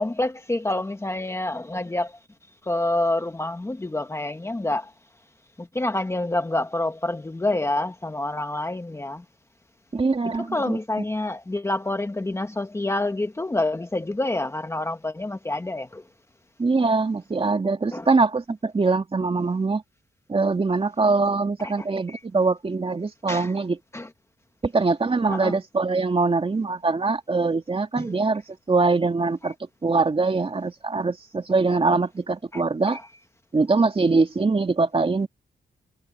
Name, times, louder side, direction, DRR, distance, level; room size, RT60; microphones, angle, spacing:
voice 1, 0.0-2.2 2.6-4.9 5.6-9.2 10.4-16.0 17.9-18.1 21.6-22.2 23.3-23.5 23.9-24.1 25.3-25.6 28.0-28.1 32.5-32.6 32.9-33.0, left 2 dB, 15° left, 1.1 m, -27 dB
voice 2, 9.9-10.8 16.6-19.8 20.3-23.8 24.6-29.5 29.8-33.0 33.5-35.3, right 3 dB, 30° right, 2.6 m, -23 dB
cardioid pair, 105°, 19 cm